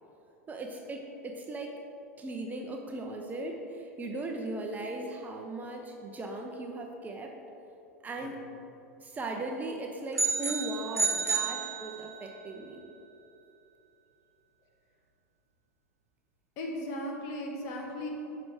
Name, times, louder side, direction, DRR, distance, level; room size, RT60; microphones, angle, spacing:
voice 1, 0.5-1.8 2.2-7.3 8.0-8.4 9.0-12.8, right 2 dB, 20° right, 2 dB, 0.8 m, -38 dB
sound 1, 10.2-12.3, right 4 dB, 90° right, 0.8 m, -30 dB
voice 2, 16.6-18.1, left 1 dB, 50° left, 0 dB, 1.9 m, -36 dB
10.5 x 6.1 x 4.7 m, 2.9 s
figure-of-eight pair, 85°, 8 cm